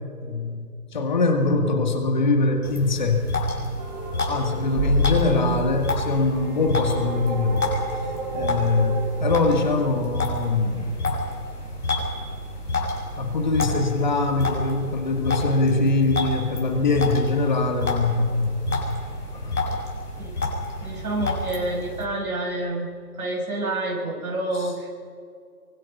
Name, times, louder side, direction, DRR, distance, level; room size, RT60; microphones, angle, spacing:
voice 1, 0.2-0.7 0.9-3.3 4.3-7.7 8.3-10.9 13.2-19.1 19.3-19.5 24.5-24.7, left 3 dB, 30° left, 4 dB, 2.0 m, -23 dB
sound 1, 2.6-22.1, left 2 dB, 70° left, 6.6 m, -30 dB
sound 2, 3.8-9.7, equal, 25° right, 3.8 m, -29 dB
voice 2, 20.8-22.9 23.2-24.9, right 2 dB, 65° right, -1 dB, 6.9 m, -28 dB
24.0 x 24.0 x 5.6 m, 2.4 s
figure-of-eight pair, 160°, 47 cm